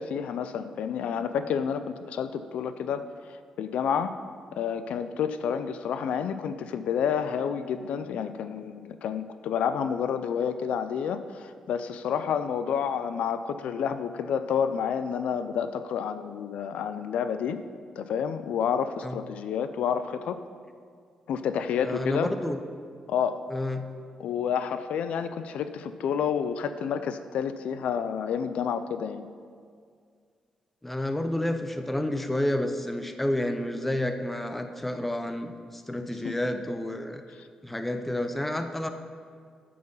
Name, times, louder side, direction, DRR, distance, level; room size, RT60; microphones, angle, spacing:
voice 1, 0.0-3.0 3.3-4.1 4.5-17.6 18.0-20.4 21.3-22.3 23.1-23.4 24.2-29.3 36.2-36.3, left 7 dB, 85° left, 10 dB, 0.4 m, -29 dB
voice 2, 21.8-22.6 23.5-23.9 30.8-37.2 37.6-38.9, left 1 dB, 10° left, 7 dB, 0.6 m, -30 dB
7.9 x 7.6 x 5.5 m, 2.1 s
cardioid pair, 130°, 2 cm